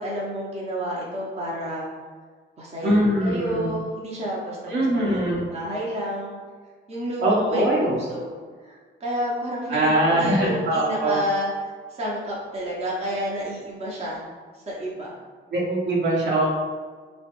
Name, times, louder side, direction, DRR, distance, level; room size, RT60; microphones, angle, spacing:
voice 1, 0.0-1.9 2.6-6.4 6.9-8.3 8.6-11.5 11.9-14.2 14.7-15.1, equal, 30° right, -5 dB, 0.7 m, -30 dB
voice 2, 2.8-3.7 4.7-5.4 7.2-8.0 9.7-11.2 15.5-16.5, right 1 dB, 65° right, -4 dB, 0.9 m, -22 dB
3.0 x 2.1 x 3.0 m, 1.5 s
cardioid pair, 90°, 20 cm